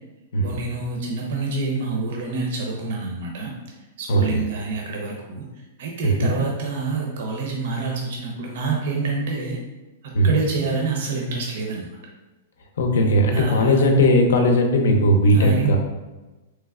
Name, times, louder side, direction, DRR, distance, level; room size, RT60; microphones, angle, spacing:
voice 1, 0.4-3.5 4.0-5.4 5.8-9.6 10.0-12.0 13.3-13.9 15.3-15.8, right 4 dB, 55° right, -1 dB, 0.5 m, -27 dB
voice 2, 4.1-4.4 6.0-6.3 10.1-10.4 12.8-15.8, equal, 90° left, 3 dB, 0.6 m, -18 dB
3.3 x 3.1 x 2.3 m, 1.1 s
supercardioid pair, 170°, 0 cm